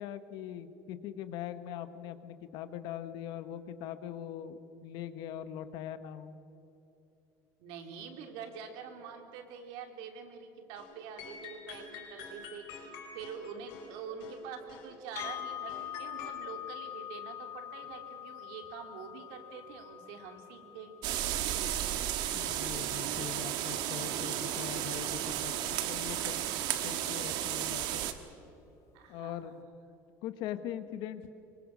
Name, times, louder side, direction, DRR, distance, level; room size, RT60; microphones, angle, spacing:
voice 1, 0.0-6.3 22.3-26.5 26.8-28.0 29.1-29.5 30.2-31.3, left 10 dB, 60° left, 11 dB, 1.3 m, -41 dB
voice 2, 7.6-21.0 28.9-29.6, right 6 dB, 80° right, 5 dB, 3.1 m, -46 dB
sound 1, 10.7-10.9 11.2-14.9 15.2-16.3, left 5 dB, 80° left, 4.8 m, -47 dB
sound 2, 15.2-23.2, left 10 dB, 35° left, 0.6 m, -44 dB
sound 3, 21.0-28.1, right 11 dB, 60° right, 1.5 m, -33 dB
25.5 x 24.0 x 6.4 m, 3.0 s
cardioid pair, 175°, 8 cm